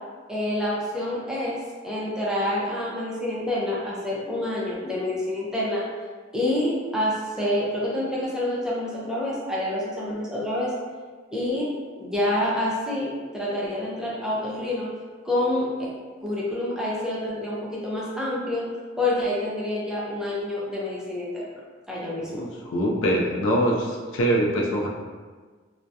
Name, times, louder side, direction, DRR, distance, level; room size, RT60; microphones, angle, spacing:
voice 1, 0.3-1.6 1.8-5.8 6.3-10.7 11.3-14.9 15.2-15.7 16.2-18.7 19.0-21.5 21.9-22.5, left 1 dB, 5° right, -6 dB, 0.4 m, -27 dB
voice 2, 22.3-24.9, equal, 85° left, -1 dB, 0.4 m, -24 dB
2.2 x 2.0 x 2.6 m, 1.4 s
head